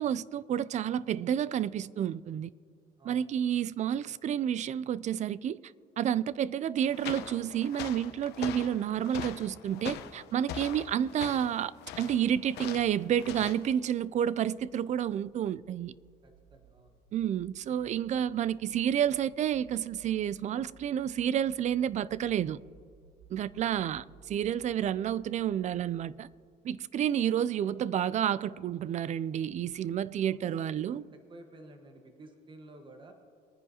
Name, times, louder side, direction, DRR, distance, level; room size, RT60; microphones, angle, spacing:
voice 1, 0.0-2.5 3.1-5.6 6.0-11.7 12.0-15.9 17.1-22.6 23.3-26.3 26.6-31.0, right 9 dB, 45° right, 0.4 m, -30 dB
voice 2, 3.0-3.6 16.2-16.9 23.5-24.2 30.2-31.0 31.3-33.1, right 2 dB, 30° right, 1.4 m, -53 dB
sound 1, 6.8-13.7, left 9 dB, 80° left, 0.9 m, -42 dB
sound 2, 13.7-26.6, right 5 dB, 70° right, 1.0 m, -60 dB
22.5 x 9.9 x 2.9 m
cardioid pair, 110°, 17 cm